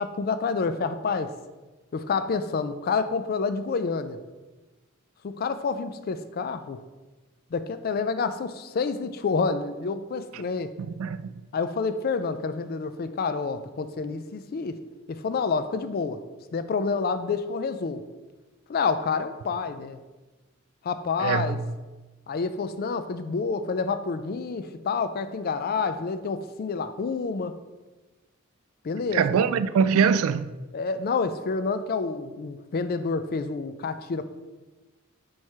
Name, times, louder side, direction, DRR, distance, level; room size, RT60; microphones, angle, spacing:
voice 1, 0.0-1.3 1.9-4.2 5.2-6.8 7.5-10.7 11.5-14.8 15.1-16.2 16.5-18.0 18.7-20.0 20.8-21.6 22.3-27.6 28.8-29.4 30.7-34.2, left 4 dB, 45° left, 0.4 m, -28 dB
voice 2, 10.8-11.2 21.2-21.6 29.1-30.5, right 6 dB, 75° right, 0.3 m, -23 dB
4.6 x 4.4 x 4.7 m
head